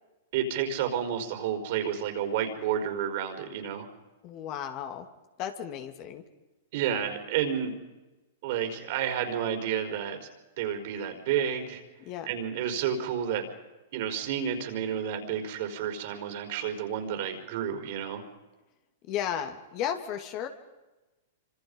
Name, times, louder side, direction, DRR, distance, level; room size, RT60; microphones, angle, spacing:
voice 1, 0.3-3.9 6.7-7.7 8.4-10.3 10.6-11.8 12.2-13.5 13.9-18.2, right 8 dB, 60° right, 6 dB, 5.1 m, -30 dB
voice 2, 4.2-5.1 5.4-6.2 12.0-12.3 19.1-20.5, left 9 dB, 40° left, 7 dB, 2.8 m, -34 dB
26.5 x 26.0 x 5.6 m, 1.1 s
hypercardioid pair, 135°, 0 cm